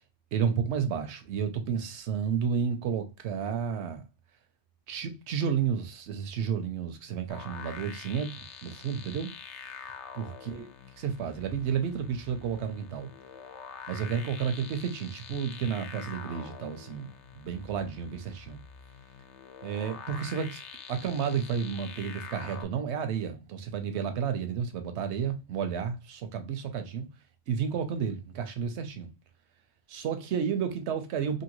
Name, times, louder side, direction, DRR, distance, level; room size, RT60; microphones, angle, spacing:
voice 1, 0.3-4.0 4.9-8.3 8.6-9.3 10.1-10.7 11.0-13.1 13.9-17.1 17.4-18.6 19.6-20.6 20.9-27.1 27.5-29.1 29.9-31.4, right 7 dB, 70° right, 0.8 m, -31 dB
sound 1, 7.3-22.7, left 7 dB, 70° left, 0.8 m, -46 dB
2.7 x 2.7 x 2.9 m
omnidirectional pair, 1.3 m